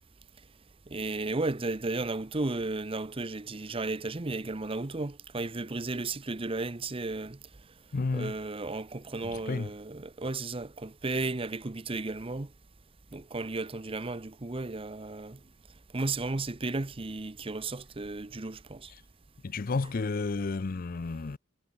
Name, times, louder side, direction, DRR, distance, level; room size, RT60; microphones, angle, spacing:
voice 1, 0.9-7.4 8.1-12.5 13.1-15.4 15.9-18.9, right 3 dB, 30° right, 0.8 m, -34 dB
voice 2, 7.9-8.3 9.2-9.7 19.4-21.4, left 3 dB, 45° left, 0.5 m, -31 dB
head